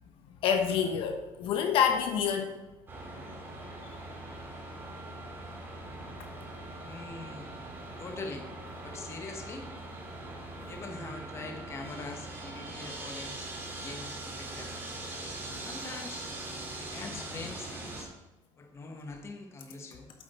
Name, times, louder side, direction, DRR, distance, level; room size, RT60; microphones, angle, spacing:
voice 1, 0.4-2.5, left 8 dB, 65° left, 5 dB, 1.0 m, -27 dB
sound 1, 2.9-18.0, right 2 dB, 25° right, 1.9 m, -42 dB
voice 2, 6.8-7.5 8.0-8.5 8.8-9.7 10.7-13.5 13.8-14.7 15.6-16.3 16.8-18.1 18.6-20.1, left 3 dB, 30° left, 4 dB, 1.2 m, -43 dB
8.1 x 7.4 x 4.2 m, 1.0 s
cardioid pair, 140°, 10 cm